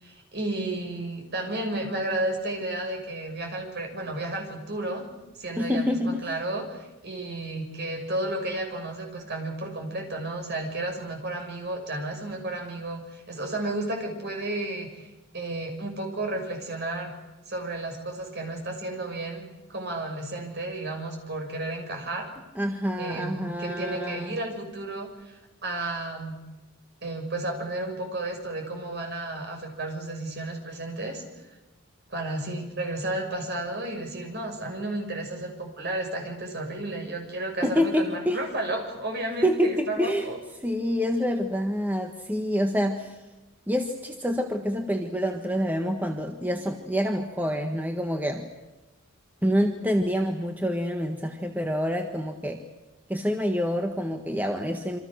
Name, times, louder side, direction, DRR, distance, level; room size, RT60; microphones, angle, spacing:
voice 1, 0.0-5.0 5.4-15.1 15.3-17.1 17.5-22.3 23.0-26.4 27.0-31.2 32.1-40.4, right 2 dB, 50° right, 3 dB, 6.4 m, -32 dB
voice 2, 5.6-6.2 22.5-24.3 37.6-38.4 39.4-40.3 40.6-43.2 43.7-48.5 49.4-52.6 53.1-55.0, equal, 10° right, 4 dB, 1.6 m, -27 dB
27.5 x 26.0 x 6.6 m, 1.1 s
head